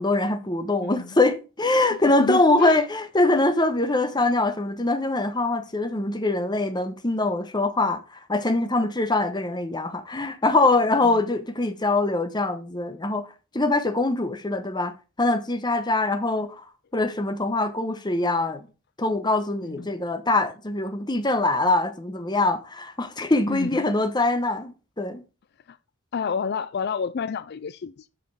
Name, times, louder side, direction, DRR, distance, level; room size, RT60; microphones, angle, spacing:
voice 1, 0.0-8.0 8.3-13.3 13.5-14.9 15.2-16.6 16.9-18.7 19.0-24.7 25.0-25.2, left 2 dB, 20° left, 1.1 m, -23 dB
voice 2, 0.8-1.2 2.2-2.8 11.0-11.2 19.6-19.9 23.5-23.8 25.7-25.8 26.1-28.1, left 6 dB, 50° left, 0.4 m, -30 dB
7.5 x 6.8 x 4.8 m
head